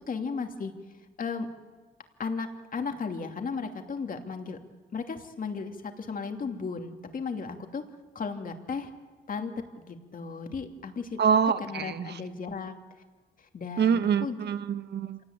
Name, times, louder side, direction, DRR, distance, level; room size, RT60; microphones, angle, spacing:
voice 1, 0.1-0.7 1.2-1.5 2.2-4.6 4.9-7.8 8.1-8.9 9.3-9.5 9.9-11.2 11.6-12.8 13.4-14.4, left 5 dB, 45° left, 5 dB, 2.8 m, -35 dB
voice 2, 11.2-12.2 13.8-15.2, right 7 dB, 60° right, 11 dB, 1.4 m, -25 dB
26.5 x 18.0 x 8.9 m, 1.4 s
cardioid pair, 90°, 20 cm